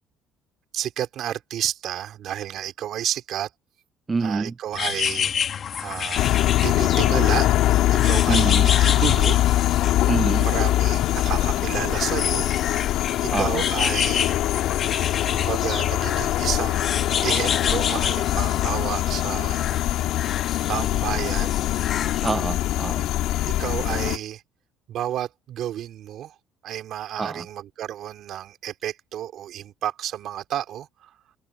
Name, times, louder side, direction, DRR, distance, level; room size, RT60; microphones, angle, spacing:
voice 1, 0.7-3.5 4.2-5.3 5.8-6.3 6.6-7.5 7.9-9.4 10.4-12.5 13.2-14.4 15.3-19.9 20.7-21.6 23.5-24.4 24.9-26.3 26.6-31.1, right 11 dB, 65° right, 3.6 m, -31 dB
voice 2, 4.1-4.5 8.3-8.7 10.1-10.5 13.3-13.6 22.2-23.1 27.2-27.5, right 4 dB, 25° right, 0.8 m, -26 dB
sound 1, 4.7-22.3, left 8 dB, 50° left, 1.6 m, -30 dB
sound 2, 6.2-24.2, left 14 dB, 75° left, 3.1 m, -22 dB
supercardioid pair, 85°, 0 cm